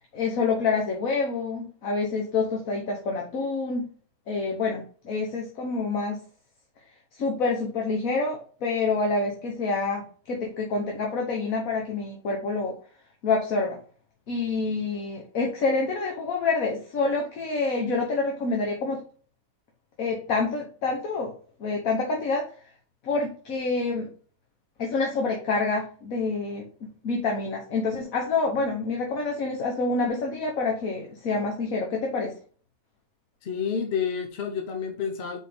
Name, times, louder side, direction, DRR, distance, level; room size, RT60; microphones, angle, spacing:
voice 1, 0.1-3.8 4.3-6.2 7.1-12.8 13.2-13.8 14.3-19.0 20.0-21.3 21.6-22.5 23.0-24.1 24.8-26.7 27.0-32.4, left 3 dB, 70° left, 1 dB, 1.5 m, -27 dB
voice 2, 33.4-35.4, left 7 dB, 50° left, 5 dB, 1.0 m, -29 dB
4.7 x 4.4 x 5.1 m, 0.41 s
omnidirectional pair, 1.5 m